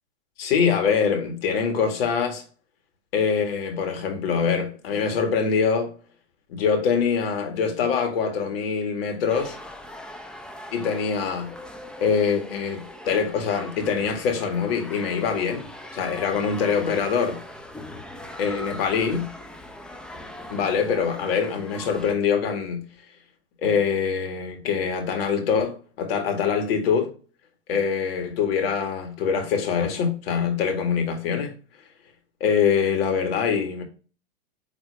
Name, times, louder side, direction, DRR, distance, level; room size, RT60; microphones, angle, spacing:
voice 1, 0.4-2.4 3.1-5.9 6.5-9.6 10.7-11.5 12.0-17.4 18.4-19.3 20.5-22.9 23.6-27.1 27.7-31.6 32.4-33.8, left 6 dB, 70° left, 2.0 m, -24 dB
sound 1, 9.3-22.1, left 1 dB, 5° left, 0.6 m, -41 dB
8.6 x 3.4 x 3.5 m
hypercardioid pair, 120°, 31 cm